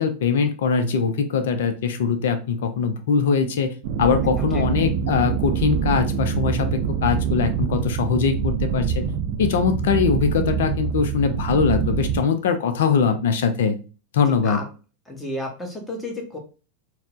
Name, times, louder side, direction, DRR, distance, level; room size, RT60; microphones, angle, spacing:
voice 1, 0.0-9.1 9.4-13.8 14.1-14.6, left 6 dB, 55° left, 8 dB, 0.4 m, -22 dB
sound 1, 3.8-12.2, right 7 dB, 50° right, 0.4 m, -25 dB
voice 2, 15.1-16.4, left 1 dB, 10° left, 1 dB, 1.0 m, -32 dB
4.1 x 2.0 x 2.5 m, 0.34 s
figure-of-eight pair, 90°, 0 cm